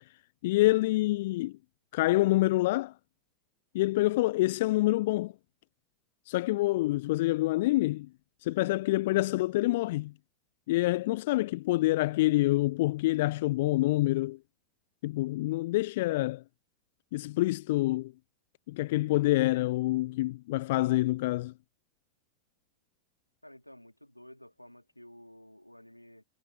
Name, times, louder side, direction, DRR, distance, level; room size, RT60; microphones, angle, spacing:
voice 1, 0.4-1.5 1.9-2.9 3.7-5.3 6.3-8.1 8.4-10.1 10.7-14.4 15.0-16.4 17.1-18.1 18.7-21.5, left 18 dB, 50° left, 0.3 m, -27 dB
voice 2, 23.4-26.2, left 1 dB, 90° left, 2.1 m, -52 dB
figure-of-eight pair, 90°, 0 cm